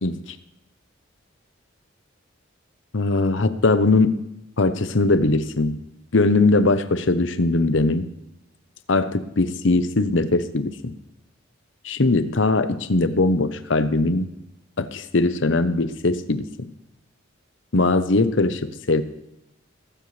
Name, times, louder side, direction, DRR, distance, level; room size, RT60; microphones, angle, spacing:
voice 1, 2.9-4.2 4.6-5.8 6.1-8.1 8.9-10.9 11.8-14.3 14.8-16.5 17.7-19.0, left 2 dB, 70° left, 11 dB, 0.9 m, -20 dB
16.5 x 15.5 x 3.3 m, 0.87 s
head